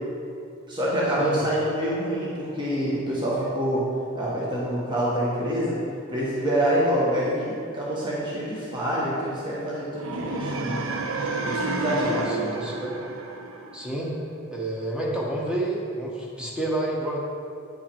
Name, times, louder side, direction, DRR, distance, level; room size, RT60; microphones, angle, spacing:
voice 1, 0.7-3.9 4.1-5.8 6.1-10.8 11.4-12.3, equal, 25° right, -7 dB, 1.2 m, -26 dB
sound 1, 10.0-14.1, right 3 dB, 80° right, 0.6 m, -30 dB
voice 2, 12.0-13.1 13.7-14.1 14.5-17.2, right 1 dB, 5° right, -4 dB, 1.1 m, -29 dB
9.3 x 4.9 x 4.4 m, 2.5 s
head